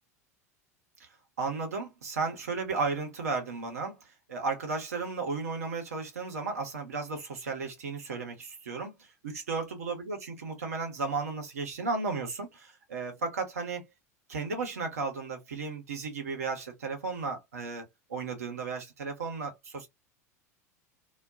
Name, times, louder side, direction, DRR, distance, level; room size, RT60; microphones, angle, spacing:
voice 1, 1.4-9.1 9.5-13.8 14.3-19.9, right 4 dB, 70° right, 1.0 m, -34 dB
2.4 x 2.2 x 2.4 m
figure-of-eight pair, 80°, 9 cm